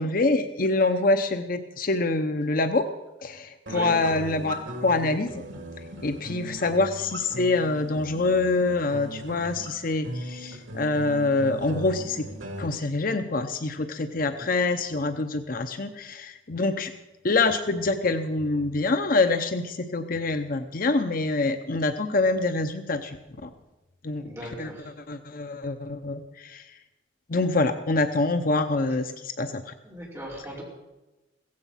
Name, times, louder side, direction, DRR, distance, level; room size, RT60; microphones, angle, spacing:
voice 1, 0.0-2.9 3.2-4.5 4.8-5.4 6.0-12.3 12.6-16.9 17.2-23.2 23.4-23.5 24.0-24.7 25.1-26.6 27.3-29.7, left 3 dB, 50° left, 8 dB, 0.8 m, -25 dB
sound 1, 3.7-12.7, equal, 80° right, 2.4 m, -38 dB
voice 2, 24.2-24.8 29.8-30.6, right 1 dB, 15° right, -4 dB, 5.0 m, -39 dB
16.0 x 15.0 x 5.7 m, 1.1 s
head